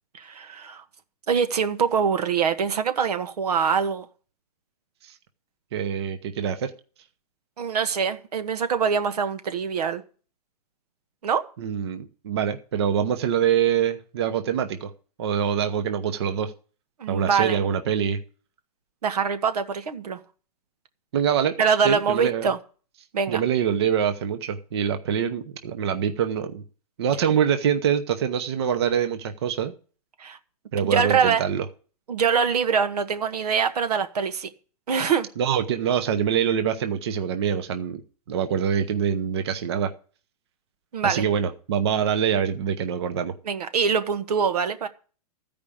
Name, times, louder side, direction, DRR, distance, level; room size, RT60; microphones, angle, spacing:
voice 1, 0.2-0.8 1.3-4.1 7.6-10.0 11.2-11.5 17.0-17.6 19.0-20.2 21.6-22.6 23.1-23.4 30.2-30.4 30.8-31.4 32.1-34.5 34.9-35.3 40.9-41.3 43.5-44.9, right 6 dB, 85° right, 1.4 m, -24 dB
voice 2, 5.7-6.7 11.6-14.9 15.2-16.5 17.1-18.2 21.1-21.5 21.8-22.5 23.3-26.6 27.0-29.7 30.7-31.6 35.4-38.0 38.3-39.9 41.0-43.3, right 8 dB, 45° right, 0.9 m, -25 dB
14.5 x 5.2 x 8.5 m
hypercardioid pair, 175°, 20 cm